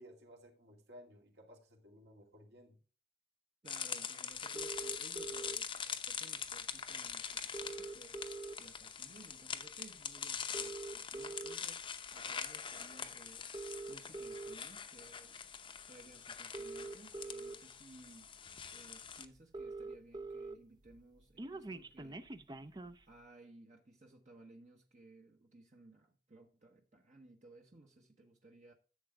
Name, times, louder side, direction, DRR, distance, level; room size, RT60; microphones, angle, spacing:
voice 1, 0.0-2.8, equal, 70° right, 2.4 m, -57 dB
voice 2, 3.6-13.5 13.9-22.3 23.1-28.7, right 2 dB, 45° right, 1.0 m, -59 dB
sound 1, 3.7-19.3, left 7 dB, 30° left, 0.7 m, -44 dB
sound 2, 4.6-5.6 6.7-6.8 7.1-7.2 7.4-8.8 9.3-9.5 10.4-11.5 12.3-12.5 13.4-14.6 15.8-15.9 16.4-17.5 18.2-18.3 18.6-18.7 19.0-19.1 19.2-20.5 20.9-23.0, right 3 dB, 25° right, 0.5 m, -44 dB
11.0 x 7.8 x 3.5 m
head